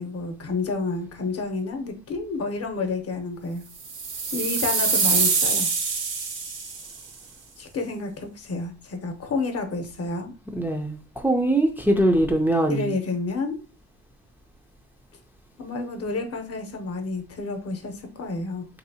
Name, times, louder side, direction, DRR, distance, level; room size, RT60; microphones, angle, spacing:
voice 1, 0.0-3.6 4.3-5.7 7.6-10.3 12.7-13.6 15.6-18.7, left 3 dB, 50° left, 0.8 m, -30 dB
sound 1, 3.8-7.0, right 5 dB, 60° right, 0.9 m, -24 dB
voice 2, 10.5-12.9, right 1 dB, 5° right, 0.4 m, -22 dB
2.9 x 2.8 x 2.7 m
cardioid pair, 90°, 30 cm